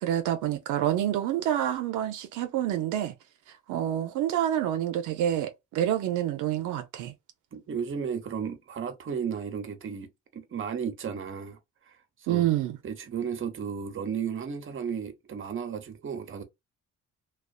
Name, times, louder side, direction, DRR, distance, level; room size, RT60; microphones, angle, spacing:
voice 1, 0.0-3.1 3.5-7.1 12.3-12.8, right 11 dB, 85° right, 0.5 m, -28 dB
voice 2, 7.5-11.6 11.9-12.5 12.8-16.4, right 7 dB, 40° right, 0.8 m, -34 dB
2.4 x 2.3 x 2.4 m
cardioid pair, 90°, 30 cm